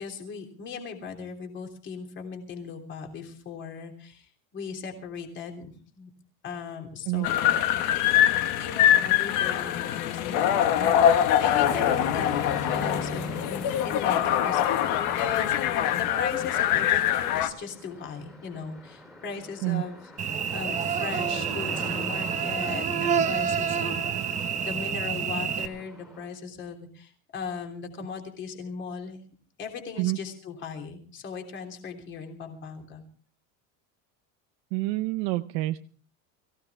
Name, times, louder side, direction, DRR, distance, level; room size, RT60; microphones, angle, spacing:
voice 1, 0.0-6.1 6.4-7.7 8.6-11.9 12.1-12.3 12.7-15.5 15.9-20.1 20.5-29.2 29.6-33.0, left 6 dB, 30° left, 3 dB, 3.3 m, -38 dB
sound 1, 7.2-17.5, left 11 dB, 55° left, 1.6 m, -23 dB
sound 2, 11.6-26.3, left 1 dB, ahead, 2.9 m, -42 dB
Cricket / Buzz, 20.2-25.7, right 7 dB, 20° right, 0.9 m, -28 dB
voice 2, 34.7-35.8, right 19 dB, 65° right, 8 dB, 0.8 m, -27 dB
23.0 x 16.0 x 3.5 m, 0.42 s
cardioid pair, 180°, 36 cm